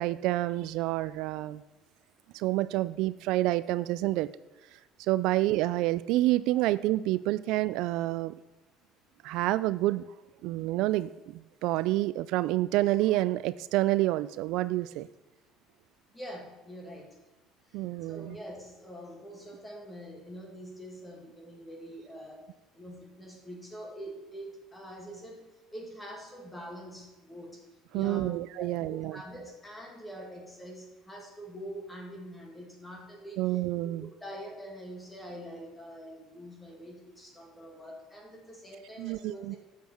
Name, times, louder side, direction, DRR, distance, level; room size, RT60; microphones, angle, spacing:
voice 1, 0.0-1.6 2.3-4.3 5.0-8.3 9.2-10.0 10.4-15.1 17.7-18.4 27.9-29.2 33.4-34.1 39.0-39.6, right 16 dB, 70° right, 16 dB, 0.3 m, -28 dB
voice 2, 16.1-17.2 17.7-22.5 22.7-27.7 27.9-28.3 28.6-33.9 34.2-39.6, equal, 10° left, 1 dB, 2.2 m, -45 dB
11.5 x 7.6 x 4.4 m, 1.1 s
cardioid pair, 145°, 0 cm